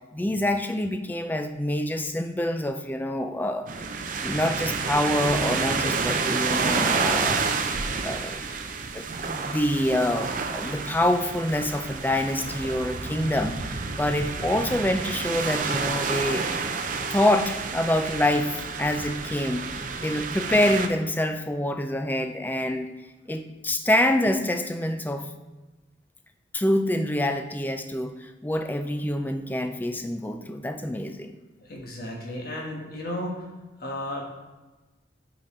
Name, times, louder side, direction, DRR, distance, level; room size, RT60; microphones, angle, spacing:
voice 1, 0.1-3.7 4.2-7.4 8.0-8.5 8.9-16.5 17.1-19.7 20.0-22.9 23.3-25.3 26.5-31.3, left 1 dB, 10° left, 6 dB, 0.4 m, -26 dB
sound 1, 3.7-20.9, right 4 dB, 45° right, 0.5 m, -29 dB
voice 2, 31.6-33.5 33.8-34.2, left 1 dB, 50° left, -1 dB, 1.4 m, -34 dB
8.7 x 4.0 x 4.3 m, 1.2 s
head